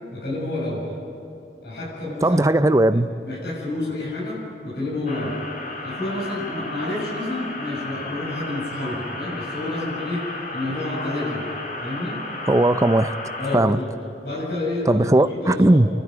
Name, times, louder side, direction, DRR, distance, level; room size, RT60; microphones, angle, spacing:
voice 1, 0.1-0.8 1.6-2.4 2.9-4.4 4.6-5.4 5.8-12.2 12.4-12.5 13.4-13.9 14.2-15.8, left 2 dB, 60° left, -8 dB, 7.7 m, -29 dB
voice 2, 2.2-3.1 12.5-13.1 13.5-13.8 14.9-15.9, right 1 dB, 20° right, 12 dB, 0.5 m, -17 dB
sound 1, 5.1-13.6, left 2 dB, 45° left, 2.9 m, -34 dB
29.0 x 12.5 x 9.4 m, 2.7 s
head